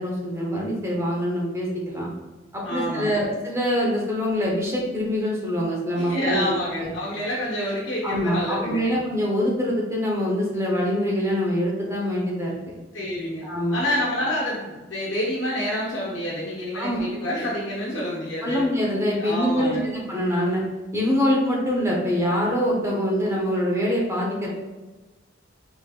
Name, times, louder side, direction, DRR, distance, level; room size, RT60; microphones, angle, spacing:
voice 1, 0.0-2.1 2.5-6.9 8.0-12.5 13.4-13.8 16.7-17.1 18.4-20.6 20.9-24.5, equal, 15° right, -4 dB, 1.1 m, -24 dB
voice 2, 2.6-3.2 6.0-8.9 12.9-13.4 13.7-18.7 19.2-19.9, equal, 70° left, -5 dB, 1.2 m, -28 dB
5.0 x 3.8 x 2.5 m, 1.2 s
head